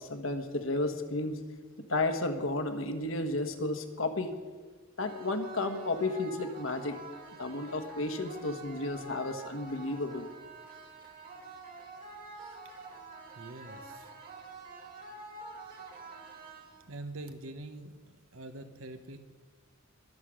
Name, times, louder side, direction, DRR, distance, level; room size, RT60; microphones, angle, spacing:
voice 1, 0.0-1.4 1.9-4.3 5.0-7.0 7.4-10.3, left 2 dB, 70° left, 7 dB, 1.4 m, -32 dB
sound 1, 5.0-17.0, right 3 dB, 45° right, 2.5 m, -47 dB
voice 2, 13.3-14.1 16.9-19.2, right 2 dB, 85° right, 8 dB, 1.2 m, -44 dB
22.0 x 7.5 x 6.4 m, 1.4 s
head